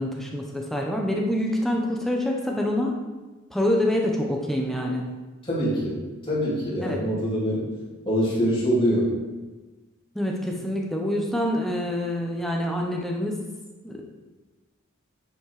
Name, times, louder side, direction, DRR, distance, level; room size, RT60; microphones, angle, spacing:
voice 1, 0.0-3.0 3.5-5.0 6.8-7.0 10.1-13.4 13.8-14.0, left 1 dB, ahead, 0 dB, 1.1 m, -26 dB
voice 2, 5.5-6.0 6.3-7.6 8.0-9.1, equal, 25° left, -8 dB, 3.4 m, -24 dB
9.7 x 6.1 x 5.0 m, 1.2 s
head